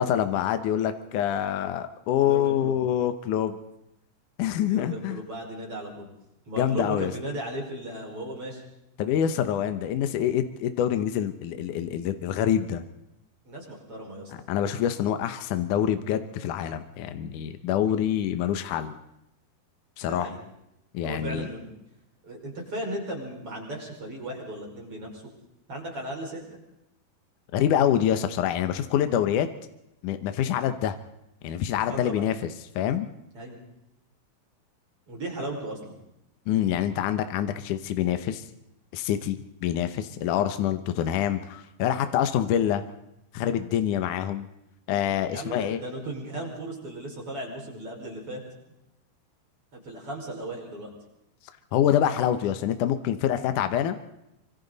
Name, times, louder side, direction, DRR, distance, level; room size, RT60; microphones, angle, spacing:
voice 1, 0.0-3.6 4.4-5.2 6.6-7.1 9.0-12.8 14.5-19.0 20.0-20.3 20.9-21.5 27.5-29.5 30.0-31.0 31.4-32.5 32.8-33.1 36.5-38.4 38.9-42.8 43.3-44.5 44.9-45.8 51.7-54.1, left 10 dB, 70° left, 9 dB, 2.0 m, -26 dB
voice 2, 2.2-2.8 4.7-6.1 6.5-8.6 13.4-14.3 20.0-20.4 21.0-21.7 22.2-25.2 25.7-26.4 31.9-32.2 33.3-33.6 35.1-36.0 45.3-48.4 49.7-50.9, right 1 dB, 35° right, -1 dB, 6.1 m, -36 dB
25.5 x 25.5 x 4.1 m, 0.86 s
omnidirectional pair, 4.8 m